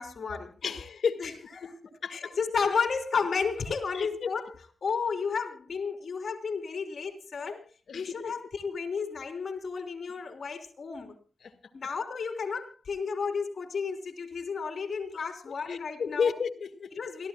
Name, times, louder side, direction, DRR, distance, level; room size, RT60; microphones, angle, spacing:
voice 1, 0.0-0.5 1.2-1.7 2.1-4.5 4.8-7.6 7.9-11.1 11.7-16.3 16.9-17.3, left 5 dB, 70° left, 3.4 m, -32 dB
voice 2, 0.6-1.2 1.6-1.8 2.0-2.3 4.0-4.3 7.9-8.3 11.4-11.5 15.5-16.9, left 6 dB, 85° left, 1.9 m, -32 dB
28.5 x 14.0 x 2.2 m
wide cardioid pair, 80°, 0 cm